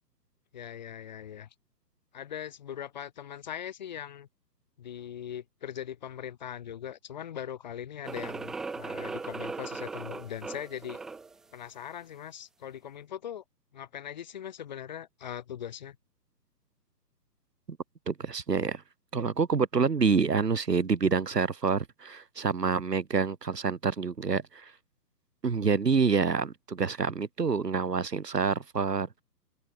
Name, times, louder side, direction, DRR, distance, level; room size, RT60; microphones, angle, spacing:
voice 1, 0.5-1.5 2.1-4.3 4.8-11.0 11.5-13.4 13.7-16.0, left 9 dB, 25° left, 7.2 m, -40 dB
sound 1, 8.0-11.4, right 4 dB, ahead, 1.5 m, -38 dB
voice 2, 18.1-18.8 19.1-24.8 25.4-29.2, right 5 dB, 70° right, 5.5 m, -27 dB
hypercardioid pair, 180°, 49 cm